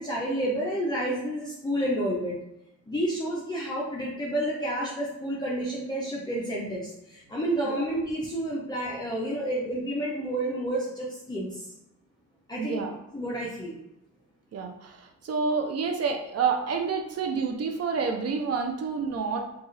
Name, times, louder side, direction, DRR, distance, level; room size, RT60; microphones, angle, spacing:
voice 1, 0.0-2.4 2.9-11.7 12.5-12.8 13.1-13.7, right 1 dB, 15° left, -6 dB, 0.9 m, -30 dB
voice 2, 12.6-13.0 14.5-19.5, right 5 dB, 55° right, 3 dB, 0.7 m, -29 dB
4.5 x 2.6 x 3.2 m, 0.87 s
cardioid pair, 90°, 30 cm